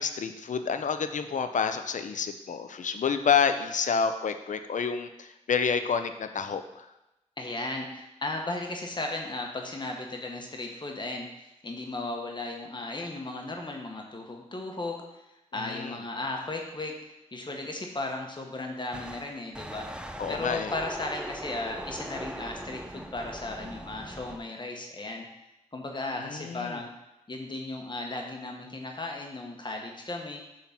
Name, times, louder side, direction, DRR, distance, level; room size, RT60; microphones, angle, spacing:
voice 1, 0.0-6.9 15.6-16.0 20.2-20.7 26.2-26.8, left 6 dB, 80° left, 9 dB, 0.6 m, -29 dB
voice 2, 7.4-15.2 15.5-20.0 20.3-25.3 25.7-26.9 27.3-30.4, left 2 dB, 40° left, 1 dB, 1.1 m, -36 dB
sound 1, 18.9-24.4, right 1 dB, 5° right, 0.5 m, -40 dB
7.2 x 3.8 x 5.8 m, 0.92 s
wide cardioid pair, 95°, 13 cm